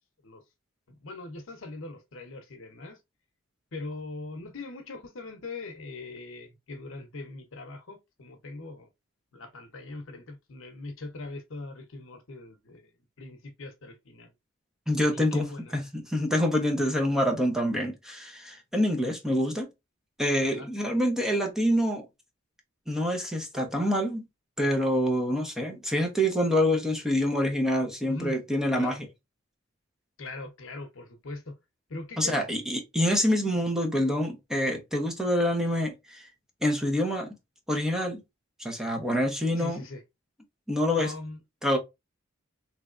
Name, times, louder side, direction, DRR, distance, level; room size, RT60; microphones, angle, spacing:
voice 1, 0.9-3.0 3.7-8.9 9.3-12.9 13.2-14.3 15.1-15.8 20.5-20.7 28.1-28.4 28.8-29.0 30.2-31.6 31.9-32.4 39.6-40.0 41.0-41.4, left 2 dB, 75° left, 0.8 m, -41 dB
voice 2, 14.9-15.4 15.7-19.7 20.2-22.0 22.9-24.3 24.6-29.0 32.2-36.3 36.6-37.3 37.7-38.2 38.6-39.8 40.7-41.1 41.6-41.8, equal, ahead, 0.7 m, -26 dB
3.4 x 3.1 x 2.5 m
head